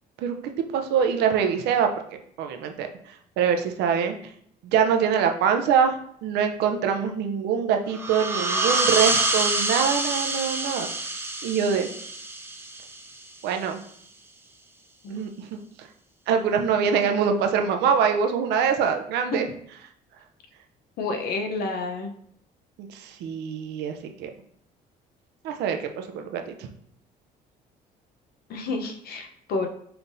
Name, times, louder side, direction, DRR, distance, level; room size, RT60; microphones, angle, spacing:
voice 1, 0.7-1.9 2.4-4.1 4.6-6.0 6.2-10.9 11.4-11.9 13.4-13.8 15.1-15.6 16.3-19.5 22.8-24.3 25.4-26.7, right 7 dB, 80° right, 6 dB, 0.6 m, -24 dB
sound 1, 7.9-13.3, right 2 dB, 15° right, 0.6 m, -26 dB
voice 2, 21.0-22.1 28.5-29.7, left 3 dB, 65° left, 4 dB, 0.8 m, -29 dB
5.7 x 3.4 x 2.7 m, 0.66 s
cardioid pair, 110°, 17 cm